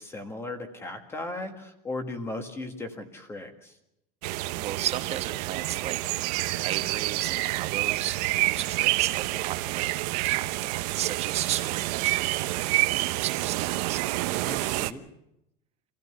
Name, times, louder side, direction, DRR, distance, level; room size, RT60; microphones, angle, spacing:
voice 1, 0.0-3.8 14.3-15.0, left 2 dB, 10° left, 7 dB, 1.7 m, -37 dB
sound 1, 4.2-14.9, right 20 dB, 70° right, 0.8 m, -28 dB
voice 2, 4.6-6.2 6.6-9.9 10.2-14.0, right 11 dB, 30° right, 7 dB, 1.3 m, -35 dB
25.5 x 16.0 x 6.9 m, 0.83 s
cardioid pair, 175°, 20 cm